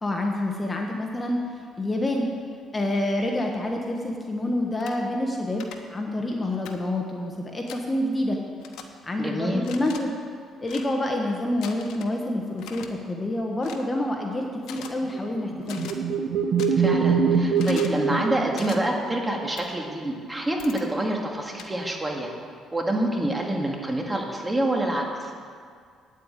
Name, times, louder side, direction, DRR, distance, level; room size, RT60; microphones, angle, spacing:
voice 1, 0.0-1.4 1.8-2.3 2.7-8.4 9.0-10.1 10.6-15.9, left 1 dB, 20° left, 1 dB, 1.2 m, -27 dB
sound 1, 4.8-4.9 5.6-5.8 6.6-6.8 7.7-7.8 8.6-8.8 9.6-10.0 10.6-10.9 11.6-12.1 12.6-12.9 13.6-13.8 14.6-14.9 15.6-15.9 16.6-16.7 17.6-18.0 18.5-18.8 19.6-19.7 20.6-20.8 21.6-21.7, left 8 dB, 85° left, 1.0 m, -41 dB
voice 2, 9.2-9.6 16.8-22.3 22.7-25.3, right 1 dB, 15° right, 0 dB, 2.0 m, -27 dB
sound 2, 15.1-19.2, right 5 dB, 70° right, 1.0 m, -24 dB
9.1 x 8.4 x 9.0 m, 2.1 s
cardioid pair, 100°, 0 cm